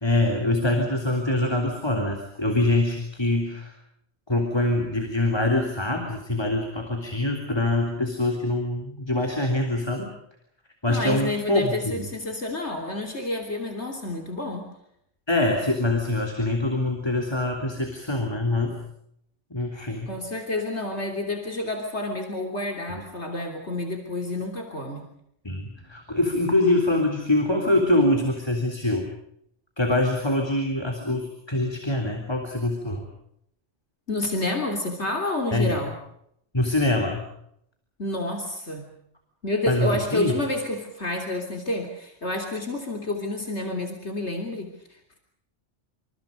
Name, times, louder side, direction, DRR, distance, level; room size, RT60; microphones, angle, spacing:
voice 1, 0.0-3.7 4.3-10.1 10.8-11.7 12.0-12.1 15.3-18.8 19.5-20.1 22.9-23.0 25.4-29.1 29.8-33.0 35.5-35.8 36.5-37.2 39.7-40.4, left 1 dB, 20° left, 2 dB, 3.5 m, -24 dB
voice 2, 10.9-14.6 20.1-25.1 34.1-36.0 38.0-38.9 39.4-45.2, left 2 dB, 65° left, 2 dB, 3.5 m, -29 dB
28.5 x 26.5 x 5.3 m, 0.73 s
omnidirectional pair, 1.3 m